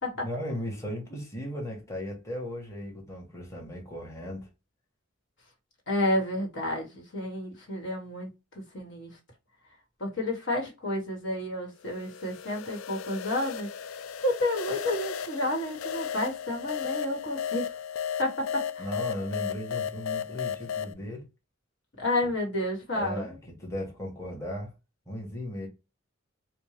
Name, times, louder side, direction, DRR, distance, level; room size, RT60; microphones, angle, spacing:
voice 1, 0.2-4.5 18.8-21.3 22.9-24.7 25.1-25.7, equal, 15° left, 1.2 m, -36 dB
voice 2, 5.9-8.3 8.5-9.2 10.0-13.7 14.2-17.8 18.2-18.9 22.0-23.4, left 1 dB, 65° left, 1.4 m, -30 dB
sound 1, 11.9-20.9, left 8 dB, 80° left, 0.4 m, -35 dB
4.3 x 2.2 x 3.2 m
head